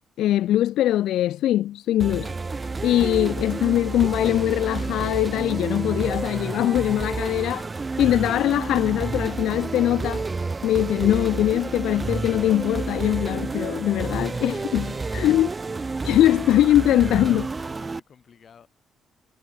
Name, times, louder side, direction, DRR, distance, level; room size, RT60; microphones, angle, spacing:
voice 1, 0.2-2.3 2.8-7.7 8.0-10.2 10.6-15.5 16.0-17.5, left 13 dB, 80° left, 0.4 m, -22 dB
sound 1, 2.0-18.0, right 3 dB, 25° right, 1.0 m, -30 dB
voice 2, 14.1-14.4 17.6-18.8, left 7 dB, 50° left, 5.4 m, -52 dB
cardioid pair, 90°, 0 cm